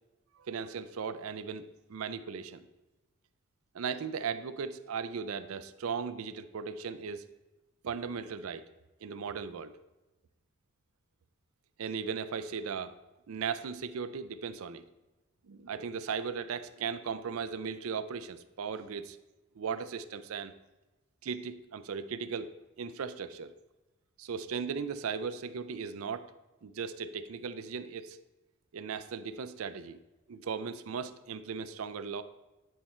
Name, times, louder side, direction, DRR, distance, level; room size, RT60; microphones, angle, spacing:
voice 1, 0.4-2.7 3.7-7.2 7.8-8.6 9.0-9.7 11.8-12.9 13.3-14.8 15.4-19.2 19.6-20.5 21.2-23.5 24.2-26.3 26.6-28.2 28.7-30.0 30.3-32.2, right 6 dB, 75° right, 11 dB, 0.4 m, -37 dB
9.2 x 4.4 x 4.2 m, 1.0 s
head